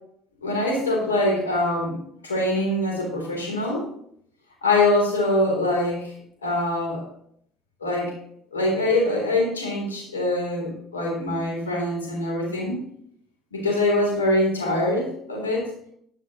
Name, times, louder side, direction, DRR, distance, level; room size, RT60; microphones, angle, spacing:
voice 1, 0.4-2.0 2.2-3.9 4.6-6.1 6.4-7.0 7.8-8.1 8.5-12.8 13.5-15.7, left 1 dB, 80° left, 0 dB, 3.5 m, -23 dB
12.5 x 11.0 x 3.1 m, 0.68 s
figure-of-eight pair, 55°, 0 cm